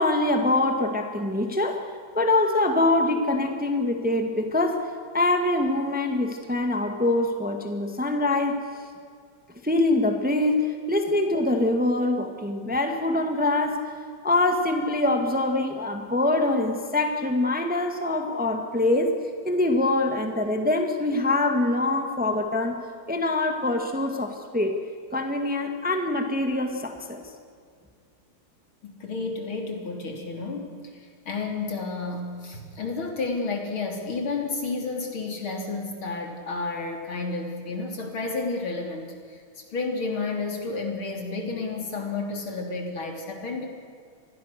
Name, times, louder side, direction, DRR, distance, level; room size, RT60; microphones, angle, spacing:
voice 1, 0.0-1.9 2.1-8.6 9.6-13.8 14.2-19.1 19.4-22.8 23.1-24.8 25.1-27.2, left 2 dB, 5° right, 4 dB, 1.7 m, -24 dB
voice 2, 28.8-43.7, left 3 dB, 65° left, 2 dB, 4.0 m, -31 dB
27.0 x 21.0 x 6.8 m, 2.2 s
omnidirectional pair, 2.4 m